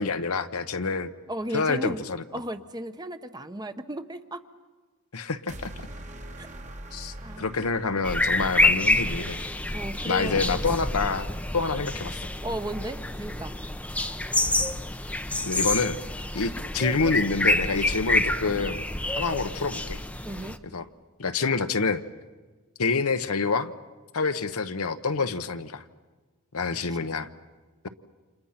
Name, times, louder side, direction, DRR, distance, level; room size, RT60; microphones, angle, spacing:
voice 1, 0.0-1.1 1.5-2.2 5.1-5.7 6.9-9.4 10.1-11.3 11.5-12.3 15.4-16.0 16.3-18.8 19.2-20.0 20.7-20.8 21.2-22.0 22.8-23.7 24.1-25.8 26.5-27.3, left 4 dB, 75° left, 9 dB, 1.1 m, -27 dB
voice 2, 1.3-2.1 2.3-4.4 6.4-6.5 7.2-7.5 9.7-10.6 12.4-13.5 20.2-20.6 26.9-27.0, right 1 dB, 20° right, 9 dB, 1.0 m, -35 dB
sound 1, 5.5-9.7, right 1 dB, 35° right, 1.6 m, -43 dB
sound 2, 8.0-20.6, left 2 dB, 5° left, 0.8 m, -27 dB
30.0 x 27.5 x 5.9 m, 1.3 s
head